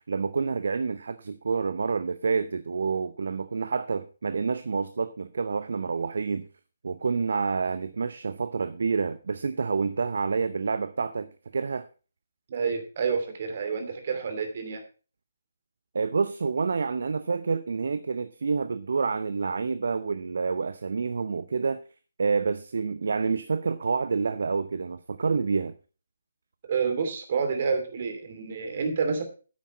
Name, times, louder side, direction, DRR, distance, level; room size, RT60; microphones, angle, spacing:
voice 1, 0.1-6.5 6.8-11.9 15.9-21.8 22.2-25.7, right 5 dB, 65° right, 0.6 m, -28 dB
voice 2, 12.5-14.8 26.7-29.2, right 5 dB, 45° right, 2.7 m, -28 dB
9.4 x 8.4 x 4.7 m
figure-of-eight pair, 145°, 0 cm